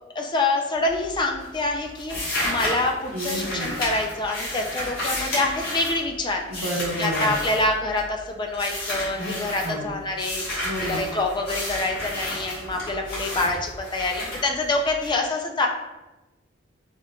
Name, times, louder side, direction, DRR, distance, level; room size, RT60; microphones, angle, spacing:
voice 1, 0.2-6.4 7.0-15.7, left 2 dB, 20° left, 2 dB, 0.3 m, -26 dB
sound 1, 0.7-1.2 1.4-8.2 8.5-9.7 10.2-15.1, left 1 dB, 50° left, 1.4 m, -31 dB
voice 2, 3.1-3.8 6.5-7.3 9.2-9.3 9.6-9.9 10.6-11.0, right 1 dB, 75° right, -3 dB, 0.8 m, -30 dB
3.5 x 2.9 x 2.2 m, 1.1 s
head